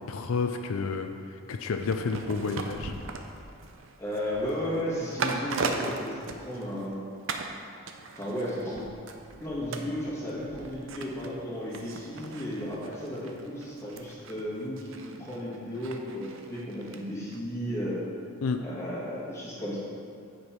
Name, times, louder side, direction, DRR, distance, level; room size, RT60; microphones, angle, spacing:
voice 1, 0.0-3.0 18.4-18.6, left 4 dB, 75° left, 5 dB, 0.4 m, -30 dB
sound 1, 1.8-6.9 7.3-7.6 7.9-17.0 17.3-17.4, right 3 dB, 60° right, 0.6 m, -38 dB
voice 2, 4.0-7.0 8.1-8.9 9.4-18.0 18.6-19.8, equal, 15° left, -7 dB, 1.8 m, -34 dB
9.5 x 5.4 x 4.5 m, 2.5 s
head